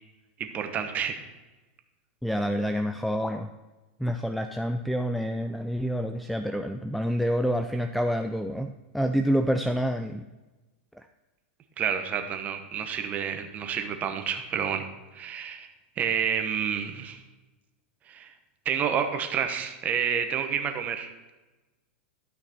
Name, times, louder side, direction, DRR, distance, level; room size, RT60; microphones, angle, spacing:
voice 1, 0.4-1.2 11.8-14.9 15.1-15.7 16.0-17.2 18.1-18.3 18.6-21.1, right 7 dB, 25° right, 6 dB, 1.1 m, -29 dB
voice 2, 2.2-3.5 4.0-10.2 11.0-11.1, equal, ahead, 8 dB, 0.3 m, -28 dB
12.5 x 5.8 x 4.4 m, 1.2 s
supercardioid pair, 140°, 6 cm